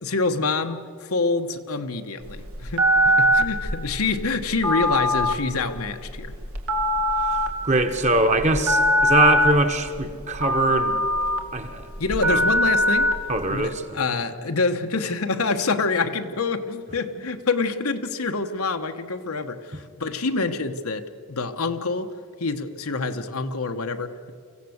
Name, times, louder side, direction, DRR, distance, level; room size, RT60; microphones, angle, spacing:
voice 1, 0.0-6.4 12.0-13.1 13.5-24.3, left 3 dB, 90° left, 7 dB, 1.2 m, -26 dB
Telephone, 2.2-13.7, equal, 90° right, 2.2 m, -22 dB
voice 2, 7.3-10.9 11.5-11.8 12.3-12.4 13.3-13.7, right 2 dB, 35° right, 7 dB, 1.4 m, -22 dB
24.5 x 16.0 x 8.0 m, 2.2 s
head